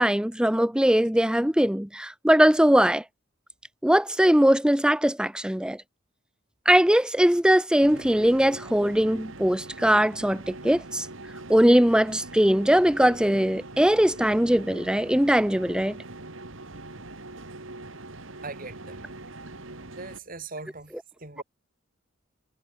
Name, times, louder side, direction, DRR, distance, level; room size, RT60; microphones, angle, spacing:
voice 1, 0.0-3.0 3.8-5.8 6.7-11.1 11.5-16.0, equal, 5° right, 0.6 m, -21 dB
sound 1, 7.8-20.2, right 2 dB, 70° right, 2.5 m, -42 dB
voice 2, 18.4-19.1 19.9-21.4, right 3 dB, 45° right, 3.8 m, -40 dB
head